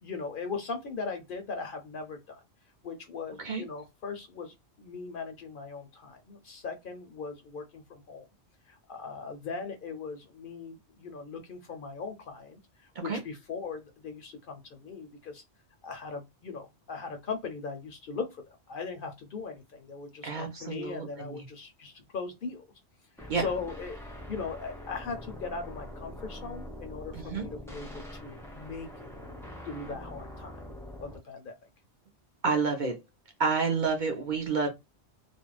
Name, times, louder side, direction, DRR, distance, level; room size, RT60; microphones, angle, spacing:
voice 1, 0.0-2.4 2.8-8.3 8.7-15.4 15.8-22.6 23.2-29.1 29.6-30.6 31.0-31.5, left 4 dB, 60° left, 0.7 m, -39 dB
voice 2, 20.2-21.4 23.3-23.5 27.1-27.4 32.4-33.0 33.4-34.7, right 4 dB, 55° right, 0.6 m, -29 dB
sound 1, 23.2-31.2, left 1 dB, 5° left, 0.4 m, -44 dB
2.5 x 2.1 x 3.0 m
omnidirectional pair, 1.2 m